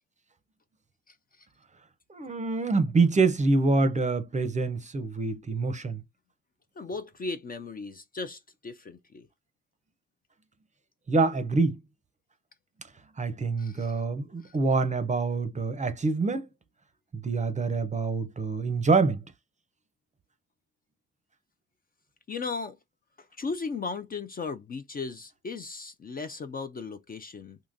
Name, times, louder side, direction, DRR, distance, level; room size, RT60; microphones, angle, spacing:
voice 1, 1.1-1.5 6.8-9.3 13.6-14.0 14.4-14.6 22.3-22.8 23.2-27.6, left 4 dB, 30° left, 0.4 m, -37 dB
voice 2, 2.1-6.0 11.1-11.8 13.2-16.5 17.1-19.2, right 3 dB, 25° right, 0.6 m, -26 dB
3.7 x 2.7 x 2.6 m
cardioid pair, 90°, 30 cm